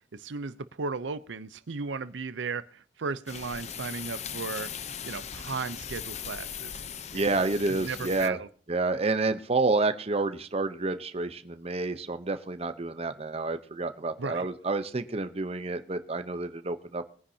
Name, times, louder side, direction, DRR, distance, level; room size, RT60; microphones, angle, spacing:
voice 1, 0.1-4.7 5.0-6.8 7.1-7.2 7.7-8.5 14.2-14.5, right 4 dB, 85° right, 14 dB, 0.6 m, -35 dB
sound 1, 3.3-8.3, left 8 dB, 40° left, 0.7 m, -39 dB
voice 2, 7.1-8.4 8.7-17.0, right 3 dB, 35° right, 9 dB, 0.8 m, -29 dB
21.0 x 9.9 x 2.8 m, 0.43 s
head